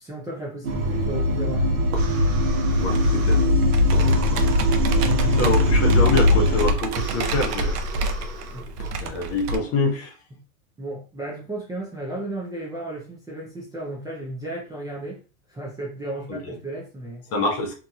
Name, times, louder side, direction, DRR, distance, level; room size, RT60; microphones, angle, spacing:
voice 1, 0.0-1.9 4.0-4.2 5.0-5.4 8.5-8.8 10.3-10.4 10.8-15.2 15.5-17.2, right 1 dB, 10° right, 0.5 m, -34 dB
sound 1, 0.6-6.7, left 1 dB, 70° right, 1.2 m, -20 dB
sound 2, 0.7-8.9, right 3 dB, 35° right, 0.8 m, -39 dB
voice 2, 2.8-3.4 4.3-4.4 5.4-7.8 9.0-10.1 16.3-16.5 17.3-17.7, left 2 dB, 30° left, 0.8 m, -25 dB
Computer keyboard, 2.8-9.6, right 2 dB, 85° right, 0.6 m, -29 dB
3.0 x 2.6 x 2.3 m
hypercardioid pair, 110°, 46 cm